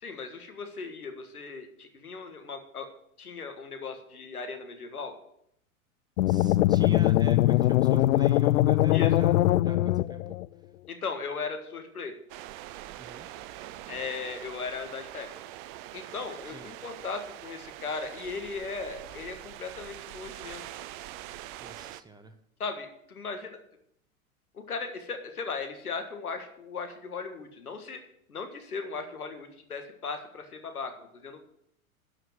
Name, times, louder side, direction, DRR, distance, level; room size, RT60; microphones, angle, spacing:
voice 1, 0.0-2.9 3.2-5.1 8.9-9.1 10.9-12.1 13.9-15.3 15.9-20.6 22.6-23.6 24.5-28.0 28.3-31.4, left 4 dB, 85° left, 7 dB, 1.6 m, -37 dB
sound 1, 6.2-10.5, left 15 dB, 65° left, 0.5 m, -22 dB
voice 2, 6.2-10.4 13.0-13.3 16.4-16.7 21.6-22.4, right 2 dB, 10° right, 8 dB, 0.8 m, -45 dB
sound 2, 12.3-22.0, right 14 dB, 35° right, 0.5 m, -44 dB
12.0 x 5.0 x 7.7 m, 0.74 s
hypercardioid pair, 100°, 43 cm